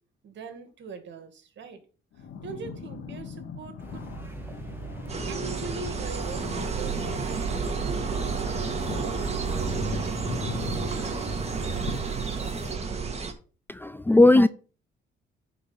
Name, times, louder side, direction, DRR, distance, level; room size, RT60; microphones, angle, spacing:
voice 1, 0.2-1.8 2.4-4.1 5.3-7.6, right 5 dB, 65° right, 2.1 m, -42 dB
sound 1, 2.1-13.1, left 5 dB, 80° left, 1.7 m, -41 dB
sound 2, 3.8-12.8, right 2 dB, 10° right, 2.1 m, -37 dB
sound 3, 5.1-13.3, right 5 dB, 35° right, 1.9 m, -31 dB
voice 2, 13.7-14.5, left 2 dB, 10° left, 0.5 m, -17 dB
9.6 x 4.6 x 5.7 m
cardioid pair, 90°, 20 cm